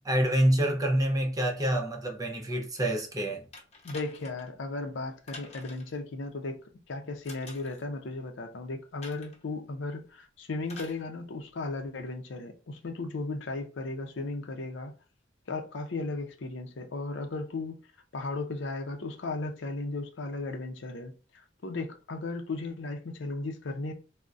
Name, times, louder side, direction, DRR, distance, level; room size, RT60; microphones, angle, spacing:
voice 1, 0.0-3.5, right 1 dB, 20° right, 0.6 m, -27 dB
sound 1, 3.5-4.5 5.3-6.0 7.2-7.8 9.0-9.4 10.6-11.0 12.1-12.2, left 3 dB, 35° left, 0.8 m, -47 dB
voice 2, 3.8-14.9 15.5-17.7 18.1-23.9, left 3 dB, 65° left, 0.5 m, -36 dB
3.8 x 2.1 x 2.4 m
head